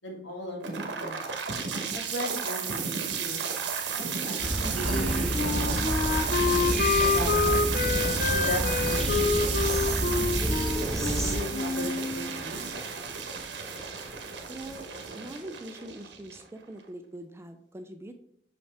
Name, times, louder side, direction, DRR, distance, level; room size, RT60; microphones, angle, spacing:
voice 1, 0.0-1.3 1.9-3.5 4.0-5.8 7.0-7.7 8.3-10.3 11.2-12.7, equal, 85° left, 0 dB, 1.7 m, -37 dB
sound 1, 0.6-16.6, right 6 dB, 85° right, 1.0 m, -32 dB
sound 2, 4.4-11.4, equal, ahead, 0.8 m, -30 dB
Wind instrument woodwind instrument, 4.9-12.4, left 4 dB, 45° left, 0.4 m, -28 dB
voice 2, 14.5-14.9 15.1-18.1, right 1 dB, 15° right, 7 dB, 0.4 m, -42 dB
5.9 x 5.3 x 3.3 m, 0.70 s
head